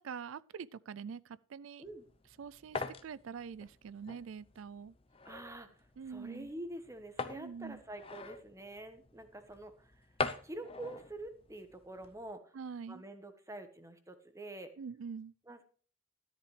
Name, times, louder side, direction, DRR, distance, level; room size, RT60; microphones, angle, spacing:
voice 1, 0.0-1.8 2.4-4.9 6.0-6.5 7.3-7.8 12.5-13.0 14.8-15.3, right 6 dB, 90° right, 0.4 m, -45 dB
sound 1, 1.8-12.3, left 4 dB, 30° left, 0.7 m, -44 dB
voice 2, 5.2-10.1 10.4-12.6 12.9-14.7 15.5-15.6, right 1 dB, 15° right, 1.2 m, -47 dB
13.5 x 10.5 x 3.3 m
head